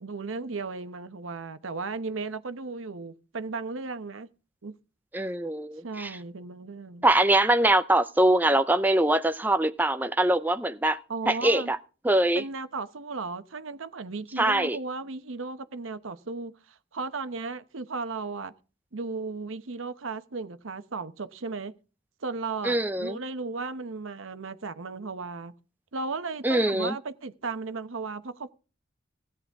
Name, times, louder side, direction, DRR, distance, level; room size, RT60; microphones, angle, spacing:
voice 1, 0.0-4.3 4.6-4.8 5.8-7.1 11.1-11.7 12.3-18.5 18.9-21.7 22.2-25.5 25.9-28.5, right 4 dB, 90° right, 0.9 m, -35 dB
voice 2, 5.1-6.2 7.0-11.0 11.3-11.8 12.0-12.4 14.4-14.8 22.6-23.2 26.4-26.9, right 1 dB, 10° right, 0.5 m, -23 dB
16.5 x 9.6 x 3.5 m
head